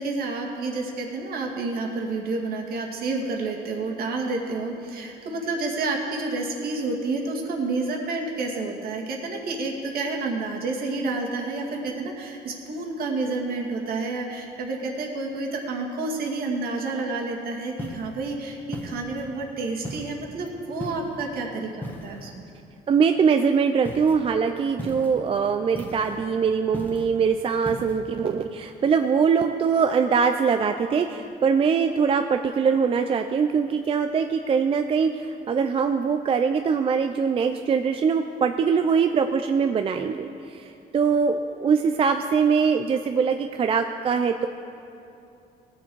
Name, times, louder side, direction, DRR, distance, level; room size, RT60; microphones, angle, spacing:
voice 1, 0.0-22.4, right 3 dB, 60° right, 0 dB, 1.9 m, -29 dB
sound 1, 17.8-18.2 18.7-19.3 19.8-20.2 20.8-21.2 21.8-22.3 23.8-24.2 24.8-25.2 25.7-26.2 26.7-27.2 27.6-28.0, left 1 dB, 10° left, 1.4 m, -37 dB
voice 2, 22.9-44.5, right 6 dB, 35° right, 6 dB, 0.4 m, -22 dB
18.5 x 7.1 x 4.6 m, 2.6 s
cardioid pair, 110°, 17 cm